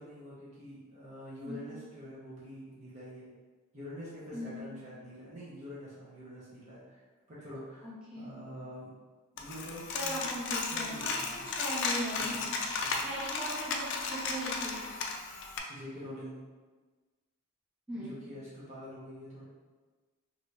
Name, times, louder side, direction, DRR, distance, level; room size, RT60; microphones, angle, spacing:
voice 1, 0.0-3.3 3.7-7.0 7.3-7.9 8.2-8.9 9.3-10.2 10.7-11.3 12.2-12.3 12.8-13.0 15.7-16.3 17.9-19.4, equal, 35° right, -9 dB, 0.8 m, -46 dB
voice 2, 4.3-4.6 7.8-8.3 9.9-12.5 13.0-14.8 17.9-18.1, right 1 dB, 5° right, -10 dB, 1.0 m, -39 dB
Coin (dropping), 9.4-15.6, left 4 dB, 55° left, 0.4 m, -35 dB
3.1 x 2.6 x 3.1 m, 1.3 s
head